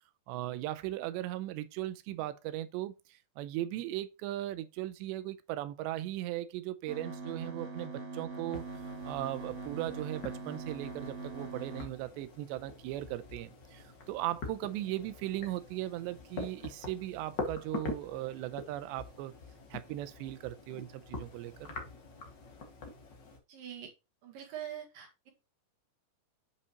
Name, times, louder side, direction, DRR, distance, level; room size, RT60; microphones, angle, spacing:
voice 1, 0.3-8.7 9.0-19.3 19.7-21.7, right 14 dB, 85° right, 2.9 m, -38 dB
sound 1, 6.9-11.9, right 4 dB, 45° right, 1.2 m, -42 dB
sound 2, 8.5-23.4, left 3 dB, 80° left, 1.0 m, -45 dB
voice 2, 23.5-23.9 24.2-25.3, right 10 dB, 60° right, 3.0 m, -43 dB
8.3 x 5.5 x 2.9 m
omnidirectional pair, 5.1 m